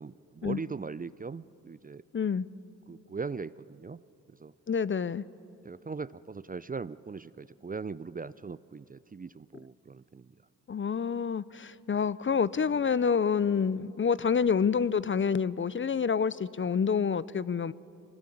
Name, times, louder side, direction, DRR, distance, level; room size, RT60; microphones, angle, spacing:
voice 1, 0.0-2.0 2.9-4.0 4.4-4.5 5.6-10.3, right 4 dB, 20° right, 17 dB, 0.5 m, -40 dB
voice 2, 2.1-2.5 4.7-5.2 10.7-17.7, left 6 dB, 30° left, 19 dB, 0.6 m, -28 dB
23.0 x 19.5 x 8.6 m, 2.7 s
supercardioid pair, 45°, 39 cm